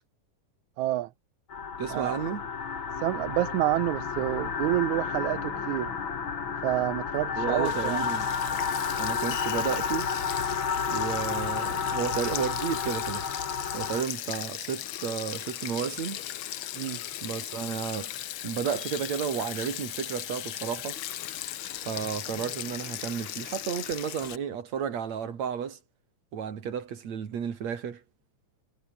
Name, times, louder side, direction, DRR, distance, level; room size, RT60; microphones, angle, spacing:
voice 1, 0.8-1.1 1.9-2.2 3.0-5.9 6.6-8.0 16.8-17.0, right 15 dB, 75° right, 2.2 m, -28 dB
sound 1, 1.5-14.0, left 6 dB, 40° left, 2.9 m, -31 dB
voice 2, 1.8-2.4 7.4-8.3 9.0-10.1 10.9-13.3 13.7-16.2 17.2-18.1 18.4-21.0 21.9-25.8 26.3-28.0, right 7 dB, 60° right, 3.7 m, -32 dB
Sink (filling or washing), 7.6-24.4, left 12 dB, 80° left, 1.1 m, -37 dB
omnidirectional pair, 3.7 m